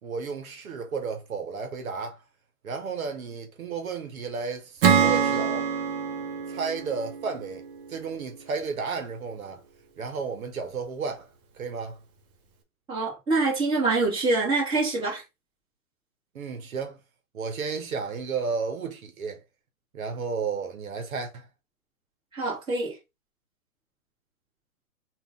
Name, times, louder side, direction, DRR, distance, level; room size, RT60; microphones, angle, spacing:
voice 1, 0.0-2.2 2.6-5.7 6.5-7.6 7.9-9.6 10.0-11.3 11.6-12.0 16.3-17.0 17.3-19.4 19.9-21.5, right 5 dB, 70° right, 1.2 m, -33 dB
Acoustic guitar / Strum, 4.8-8.3, right 7 dB, 40° right, 1.1 m, -25 dB
voice 2, 12.9-15.2 22.3-23.0, right 3 dB, 10° right, 2.0 m, -25 dB
3.7 x 2.7 x 3.6 m
hypercardioid pair, 140°, 43 cm